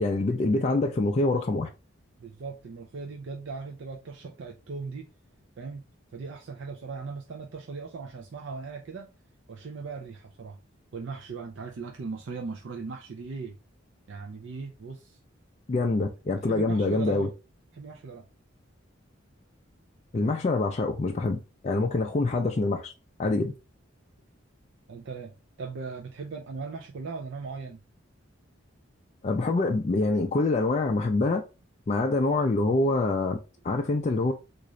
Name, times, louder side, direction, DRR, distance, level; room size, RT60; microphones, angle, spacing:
voice 1, 0.0-1.7 15.7-17.3 20.1-22.9 23.2-23.5 29.2-31.4 31.9-33.4 33.6-34.3, left 2 dB, 35° left, 0.3 m, -25 dB
voice 2, 2.2-5.1 5.6-5.8 6.1-9.1 9.5-10.6 10.9-13.6 14.1-15.2 16.3-17.3 17.7-18.3 24.9-27.8, right 4 dB, 65° right, 0.4 m, -38 dB
3.8 x 2.4 x 3.1 m
head